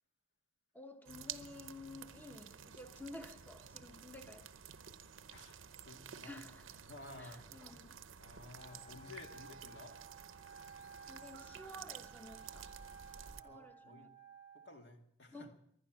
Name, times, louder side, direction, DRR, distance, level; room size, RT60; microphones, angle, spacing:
voice 1, 0.7-4.5 6.2-6.8 7.2-7.9 11.1-12.8 13.4-14.1 15.3-15.5, left 2 dB, 10° left, 1.0 m, -52 dB
sound 1, 1.1-13.4, right 8 dB, 80° right, 0.8 m, -52 dB
voice 2, 5.8-6.4 6.7-7.9 8.2-10.0 13.3-14.1 14.6-15.5, left 2 dB, 60° left, 2.1 m, -54 dB
Wind instrument woodwind instrument, 8.5-14.7, right 5 dB, 35° left, 5.0 m, -56 dB
22.5 x 10.5 x 6.2 m
head